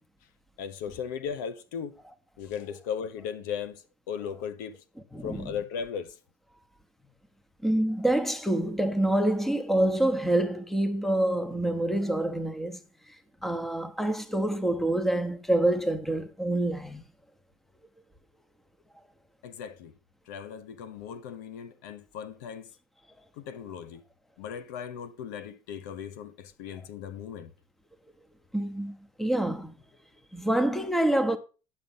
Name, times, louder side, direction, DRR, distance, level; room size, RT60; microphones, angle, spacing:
voice 1, 0.6-2.0 2.4-4.8 5.2-6.2 19.4-19.9 20.3-22.7 23.4-24.0 24.4-27.5, left 7 dB, 85° left, 1.2 m, -37 dB
voice 2, 5.1-5.5 7.6-12.8 13.4-17.0 28.5-29.7 30.3-31.4, right 1 dB, 5° left, 1.0 m, -26 dB
10.0 x 6.0 x 5.5 m
supercardioid pair, 130°, 10 cm